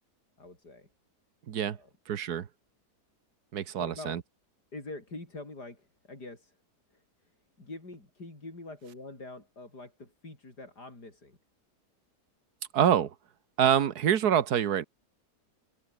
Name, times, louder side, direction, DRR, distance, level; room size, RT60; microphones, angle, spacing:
voice 1, 0.4-0.9 1.6-1.9 3.7-4.2 4.7-6.6 6.9-11.4, left 2 dB, 90° left, 6.9 m, -45 dB
voice 2, 1.5-1.8 2.1-2.5 3.5-4.2 12.7-13.1 13.6-14.8, right 9 dB, 75° right, 1.7 m, -26 dB
omnidirectional pair, 1.7 m